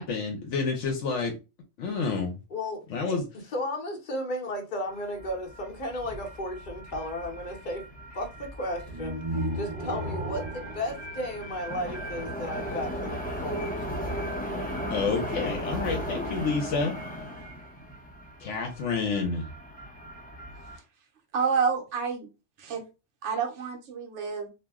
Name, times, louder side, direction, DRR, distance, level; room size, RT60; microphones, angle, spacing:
voice 1, 0.0-1.4 1.8-2.4 2.9-3.3 14.9-16.9 18.4-19.5, left 4 dB, 75° left, 1.0 m, -29 dB
voice 2, 2.5-3.2 3.5-7.8 8.1-9.2 9.5-13.9, left 1 dB, 45° left, 0.9 m, -34 dB
sound 1, 4.9-20.8, equal, 10° left, 0.4 m, -37 dB
sound 2, 8.9-12.0, right 1 dB, 45° right, 1.2 m, -35 dB
voice 3, 21.3-22.3 22.6-22.8 23.2-24.5, right 5 dB, 75° right, 1.0 m, -28 dB
2.6 x 2.1 x 3.5 m
omnidirectional pair, 1.3 m